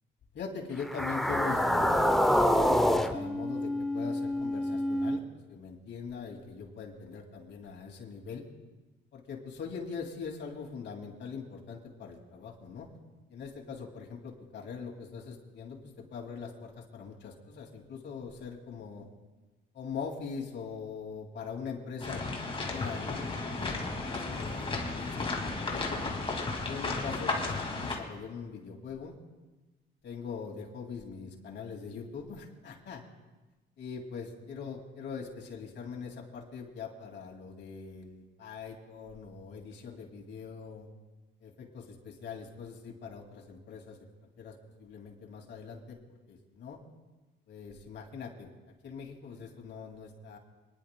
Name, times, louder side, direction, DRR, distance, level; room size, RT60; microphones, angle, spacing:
voice 1, 0.3-5.2 5.5-8.4 9.1-12.9 13.3-19.0 19.7-25.3 25.7-26.0 26.6-29.2 30.0-33.0 33.8-40.9 41.4-44.0 44.4-44.5 44.8-46.0 46.3-46.8 47.5-48.5 48.8-50.4, left 5 dB, 65° left, 0 dB, 2.3 m, -42 dB
sound 1, 0.8-5.2, equal, ahead, 0.6 m, -27 dB
sound 2, 22.0-28.0, left 3 dB, 25° left, 2.1 m, -34 dB
27.5 x 10.5 x 2.2 m, 1.2 s
cardioid pair, 90°, 20 cm